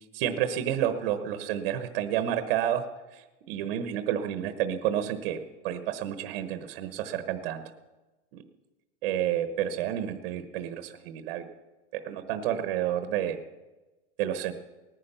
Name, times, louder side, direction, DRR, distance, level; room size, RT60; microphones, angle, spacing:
voice 1, 0.1-2.8 3.1-7.6 8.3-8.4 9.0-11.5 11.9-13.4 14.2-14.5, right 10 dB, 50° right, 9 dB, 1.1 m, -30 dB
18.5 x 10.0 x 6.9 m, 1.1 s
supercardioid pair, 175°, 38 cm